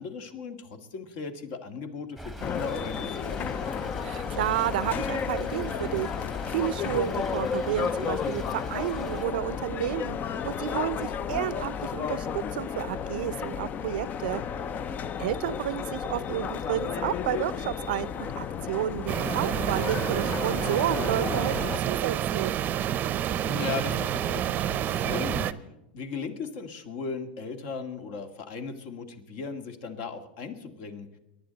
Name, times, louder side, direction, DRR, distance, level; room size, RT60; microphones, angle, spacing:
voice 1, 0.0-3.5 15.5-15.6 23.4-25.7 25.9-31.1, left 5 dB, 55° left, 7 dB, 2.1 m, -37 dB
Stream / Trickle dribble, 2.2-9.3, equal, 5° left, 1.2 m, -42 dB
sound 1, 2.4-21.8, left 7 dB, 30° left, 0.6 m, -32 dB
voice 2, 4.0-6.1 6.5-10.2 10.4-14.4 15.2-21.5 21.9-22.5, right 13 dB, 70° right, 18 dB, 0.6 m, -31 dB
sound 2, 19.1-25.5, right 10 dB, 35° right, 0.7 m, -28 dB
23.0 x 10.5 x 4.0 m, 0.95 s
hypercardioid pair, 110°, 5 cm